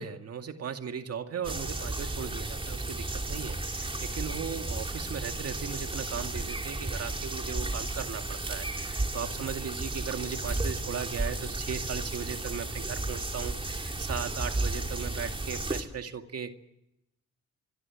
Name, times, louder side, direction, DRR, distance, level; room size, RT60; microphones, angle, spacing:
voice 1, 0.0-16.5, right 7 dB, 55° right, 7 dB, 2.3 m, -37 dB
sound 1, 1.4-15.8, right 2 dB, 15° right, 3.1 m, -33 dB
25.0 x 23.5 x 7.4 m, 0.86 s
cardioid pair, 90°, 30 cm